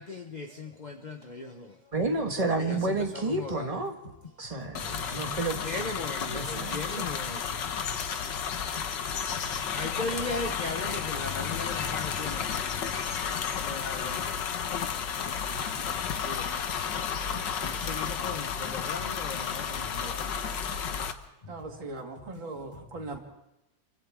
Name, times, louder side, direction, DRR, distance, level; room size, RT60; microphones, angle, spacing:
voice 1, 0.0-1.5 5.6-7.4 9.7-12.4 13.6-14.2 16.2-16.4 17.8-20.2, left 3 dB, 35° left, 0.7 m, -37 dB
voice 2, 1.9-4.0 4.4-5.6 6.3-7.1, right 3 dB, 20° right, 1.6 m, -30 dB
sound 1, 4.7-21.1, left 7 dB, 60° left, 1.7 m, -32 dB
voice 3, 21.5-23.2, right 3 dB, 65° right, 3.2 m, -39 dB
29.0 x 24.0 x 3.7 m
omnidirectional pair, 2.3 m